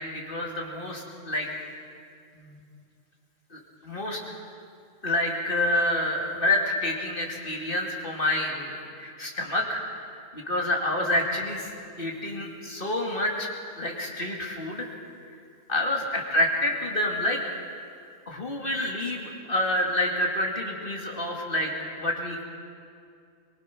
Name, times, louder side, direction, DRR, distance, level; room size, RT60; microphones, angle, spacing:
voice 1, 0.0-1.5 2.3-2.6 3.5-4.2 5.0-10.0 10.3-11.7 12.0-13.5 13.8-14.9 15.7-17.4 18.3-21.7 22.0-22.4, left 1 dB, 40° left, 0 dB, 2.8 m, -28 dB
23.5 x 22.0 x 6.1 m, 2.4 s
omnidirectional pair, 1.4 m